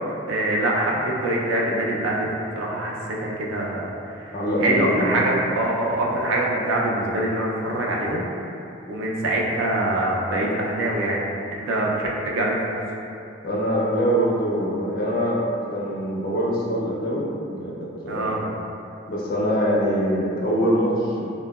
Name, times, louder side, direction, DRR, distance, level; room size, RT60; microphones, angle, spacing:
voice 1, 0.3-2.3 2.5-4.3 4.6-8.3 8.9-12.8 18.1-18.4, right 1 dB, 70° right, -3 dB, 0.4 m, -24 dB
voice 2, 4.3-5.2 13.4-15.4 15.7-17.7 18.0-18.5 19.1-21.3, equal, 45° left, -5 dB, 0.4 m, -23 dB
2.7 x 2.0 x 2.2 m, 2.7 s
head